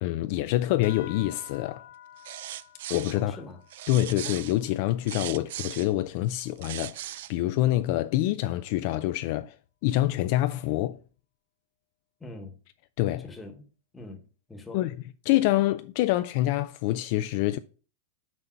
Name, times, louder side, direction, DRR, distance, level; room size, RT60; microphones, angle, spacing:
voice 1, 0.0-1.8 2.9-3.4 3.9-9.6 9.8-11.0 13.0-13.2 14.7-14.9 15.3-17.6, left 15 dB, 45° left, 0.4 m, -26 dB
sound 1, 0.8-5.8, left 11 dB, 85° left, 0.7 m, -50 dB
sound 2, 2.2-3.2 3.7-5.9 6.4-7.3, right 13 dB, 60° right, 0.4 m, -38 dB
voice 2, 3.1-3.6 12.2-12.6 13.2-14.2 14.5-14.9, left 2 dB, 10° left, 1.1 m, -43 dB
6.1 x 5.4 x 4.3 m
supercardioid pair, 160°, 0 cm